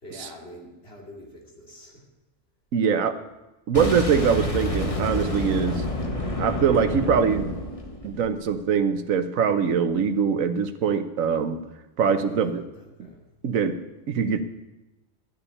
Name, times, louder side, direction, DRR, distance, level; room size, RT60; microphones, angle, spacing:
voice 1, 0.0-2.0 12.0-13.2, equal, 45° left, -1 dB, 3.0 m, -44 dB
voice 2, 2.7-3.2 3.7-5.8 6.4-7.5 8.0-11.6 12.0-12.6 13.4-13.8 14.1-14.4, right 6 dB, 75° right, 10 dB, 1.3 m, -23 dB
Boom, 3.7-8.6, left 1 dB, 25° left, 1.6 m, -29 dB
12.0 x 7.1 x 9.8 m, 1.0 s
omnidirectional pair, 1.4 m